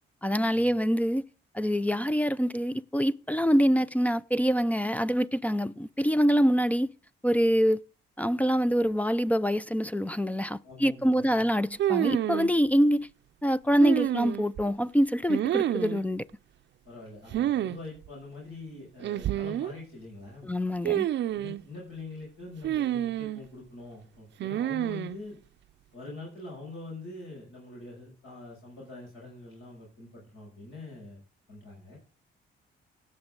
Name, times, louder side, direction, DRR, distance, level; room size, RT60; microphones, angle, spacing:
voice 1, 0.2-1.2 1.5-6.9 7.2-7.8 8.2-13.1 13.4-16.3 20.4-21.1, equal, 5° left, 0.4 m, -25 dB
voice 2, 10.6-11.4 16.8-20.5 21.3-25.4 25.9-31.2 31.5-32.0, left 2 dB, 75° left, 6.1 m, -44 dB
sound 1, 11.8-12.5 13.8-14.6 15.3-16.0 17.3-17.8 18.0-18.1 19.0-19.7 20.9-21.6 22.6-23.4 24.4-25.2, right 12 dB, 65° right, 0.5 m, -28 dB
17.0 x 6.2 x 3.8 m
cardioid pair, 90°, 20 cm